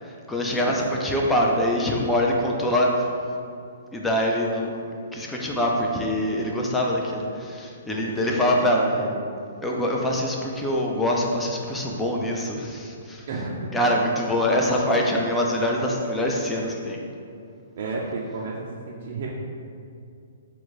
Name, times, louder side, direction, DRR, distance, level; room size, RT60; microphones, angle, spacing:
voice 1, 0.0-3.1 3.9-4.7 5.1-8.8 9.6-13.3 13.7-17.0, left 1 dB, 10° left, -2 dB, 0.5 m, -24 dB
voice 2, 7.9-9.2 13.3-13.9 17.8-19.3, right 3 dB, 60° right, -4 dB, 0.5 m, -33 dB
4.4 x 2.2 x 4.0 m, 2.4 s
hypercardioid pair, 130°, 0 cm